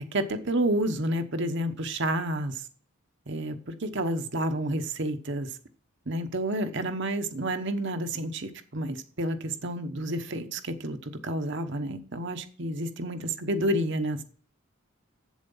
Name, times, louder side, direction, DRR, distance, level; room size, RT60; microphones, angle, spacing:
voice 1, 0.0-2.6 3.3-5.6 6.1-14.2, right 1 dB, 55° right, 1.0 m, -30 dB
8.0 x 7.4 x 5.5 m
head